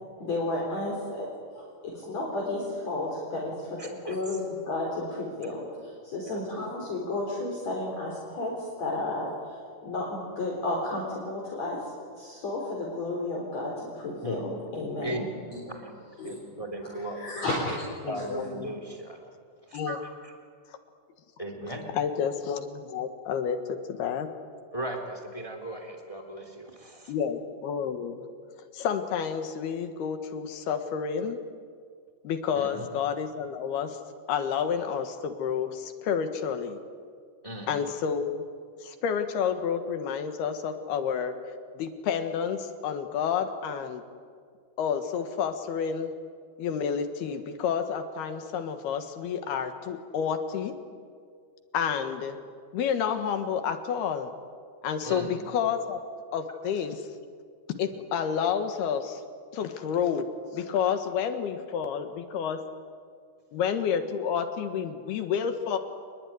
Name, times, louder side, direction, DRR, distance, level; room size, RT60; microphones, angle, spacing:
voice 1, 0.2-1.3 1.6-11.8 12.2-14.4 14.7-15.6 16.2-16.3 17.2-17.9 18.2-18.3, left 2 dB, 40° left, -2 dB, 5.1 m, -32 dB
voice 2, 3.8-4.2 6.2-6.4 14.2-14.5 15.0-15.4 15.7-15.9 16.2-17.2 18.1-19.3 19.7-20.3 21.4-21.9 24.7-27.1 32.5-32.9 37.4-37.8 55.0-55.3, right 1 dB, 10° left, 4 dB, 2.3 m, -37 dB
voice 3, 18.0-18.7 19.7-20.0 21.9-23.6 23.9-24.3 27.1-28.2 28.5-31.4 32.3-34.0 34.3-36.8 37.7-38.4 38.8-41.3 41.8-44.0 44.8-46.1 46.6-50.7 51.7-52.4 52.7-54.3 54.8-56.0 56.3-57.0 57.8-59.2 59.5-60.2 60.5-62.6 63.5-65.8, left 7 dB, 70° left, 8 dB, 3.4 m, -30 dB
28.5 x 21.0 x 9.9 m, 2.1 s
omnidirectional pair, 4.9 m